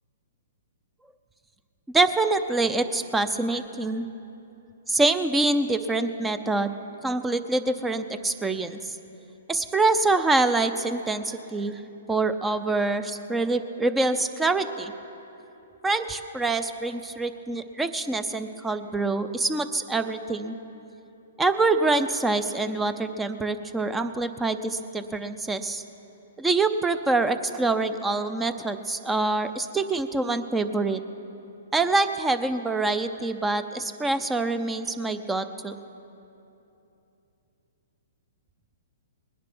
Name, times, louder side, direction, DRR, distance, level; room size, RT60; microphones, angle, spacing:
voice 1, 1.9-4.1 4.9-6.7 7.0-8.8 9.5-11.8 12.1-14.9 15.8-20.6 21.4-25.8 26.4-31.0 31.7-35.7, right 3 dB, 10° right, 11 dB, 0.6 m, -25 dB
20.0 x 10.5 x 6.1 m, 2.9 s
hypercardioid pair, 130°, 0 cm